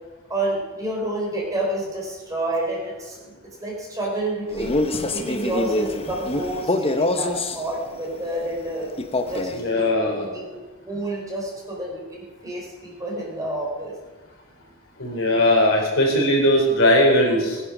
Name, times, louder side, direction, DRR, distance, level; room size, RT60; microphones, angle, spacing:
voice 1, 0.3-3.3 3.6-4.8 5.1-8.9 9.3-10.1 10.3-10.4 10.8-13.9, right 1 dB, 15° right, -3 dB, 4.2 m, -29 dB
Male speech man speaking, 4.5-7.6 9.0-9.6, left 2 dB, 25° left, 0.9 m, -25 dB
voice 2, 9.5-10.3 15.0-17.6, left 1 dB, 65° left, -1 dB, 4.7 m, -19 dB
20.0 x 10.0 x 6.1 m, 1.3 s
head